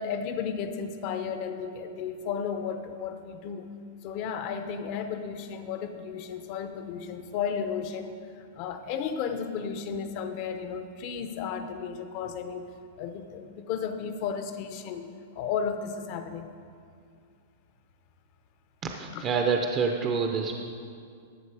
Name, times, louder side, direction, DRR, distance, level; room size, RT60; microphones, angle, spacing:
voice 1, 0.0-3.7 4.0-12.7 13.0-15.1 15.3-16.5 19.1-19.2, left 6 dB, 45° left, 8 dB, 0.8 m, -34 dB
voice 2, 19.0-20.6, right 5 dB, 25° right, 3 dB, 0.7 m, -27 dB
13.0 x 6.4 x 4.9 m, 2.3 s
hypercardioid pair, 145°, 0 cm